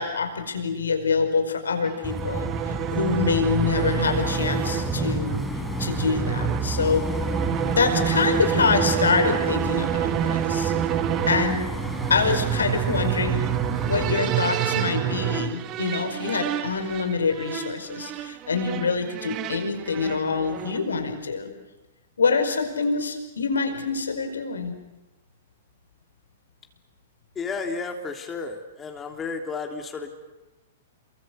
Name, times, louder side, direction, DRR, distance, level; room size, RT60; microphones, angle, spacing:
voice 1, 0.0-5.4 5.8-7.0 7.7-10.7 11.3-11.6 12.1-13.5 13.9-21.5 22.2-24.8, left 5 dB, 80° left, 7 dB, 5.1 m, -25 dB
sound 1, 1.8-20.9, right 12 dB, 35° right, 1.4 m, -28 dB
sound 2, 2.0-14.1, equal, ahead, 4.5 m, -30 dB
voice 2, 27.3-30.1, left 4 dB, 20° left, 4 dB, 3.1 m, -32 dB
28.5 x 23.5 x 8.1 m, 1.0 s
hypercardioid pair, 115°, 0 cm